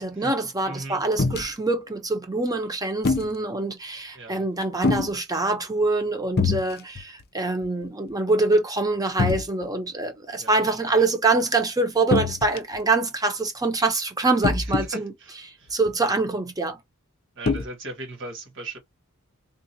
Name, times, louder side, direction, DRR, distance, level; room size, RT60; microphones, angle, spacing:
voice 1, 0.0-15.1 15.7-16.8, right 3 dB, 15° right, 0.9 m, -25 dB
voice 2, 0.7-1.0 4.1-4.5 10.4-10.6 10.9-11.0 14.9-15.7 17.4-18.8, right 2 dB, 60° right, 1.8 m, -37 dB
sound 1, 1.2-1.5 3.0-3.3 4.8-5.1 6.4-6.7 7.0-7.2 7.6-7.7 9.2-9.5 12.1-12.8 14.4-14.9 15.9-16.0 17.5-17.7, left 4 dB, 45° left, 0.6 m, -23 dB
3.8 x 2.5 x 2.8 m
head